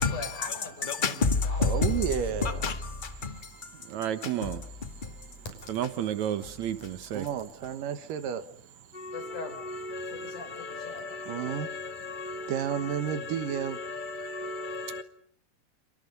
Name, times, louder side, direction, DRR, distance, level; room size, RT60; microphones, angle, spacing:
voice 1, 0.0-1.6 2.0-2.7 9.1-9.6 10.1-11.1, left 3 dB, 70° left, 7.5 m, -42 dB
voice 2, 0.9-1.9 2.4-2.7 3.0-3.4 4.4-4.5 8.9-9.3 9.9-12.5 13.1-13.2 13.9-15.0, left 4 dB, 20° left, 1.4 m, -31 dB
voice 3, 1.6-2.6 7.1-8.5 11.3-11.7 12.5-13.8, right 9 dB, 90° right, 3.0 m, -31 dB
voice 4, 3.9-4.6 5.7-7.2, right 10 dB, 65° right, 2.4 m, -31 dB
29.5 x 28.0 x 5.4 m
omnidirectional pair, 3.7 m